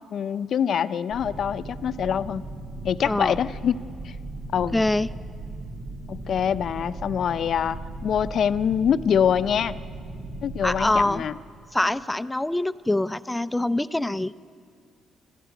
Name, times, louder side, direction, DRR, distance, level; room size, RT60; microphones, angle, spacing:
voice 1, 0.1-2.5 2.8-4.2 4.5-4.8 6.1-9.8 10.4-11.3, left 8 dB, 60° left, 13 dB, 0.6 m, -25 dB
sound 1, 1.1-11.1, right 2 dB, 65° right, 3.0 m, -37 dB
voice 2, 3.1-3.4 4.7-5.1 10.6-11.2 11.7-14.3, left 1 dB, 10° left, 15 dB, 0.5 m, -24 dB
26.0 x 14.0 x 9.2 m, 2.2 s
cardioid pair, 90°, 0 cm